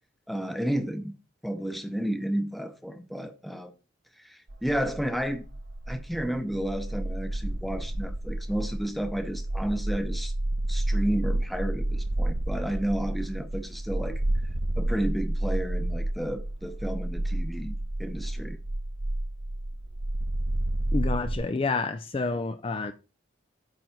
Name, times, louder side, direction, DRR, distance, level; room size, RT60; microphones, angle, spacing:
voice 1, 0.3-1.1 1.4-3.7 4.2-5.4 5.9-10.3 10.7-14.2 14.8-18.6, right 1 dB, ahead, 0.8 m, -32 dB
sound 1, 4.5-21.4, right 1 dB, 55° right, 0.9 m, -30 dB
voice 2, 20.9-22.9, left 3 dB, 25° left, 0.4 m, -29 dB
9.0 x 3.9 x 5.8 m
head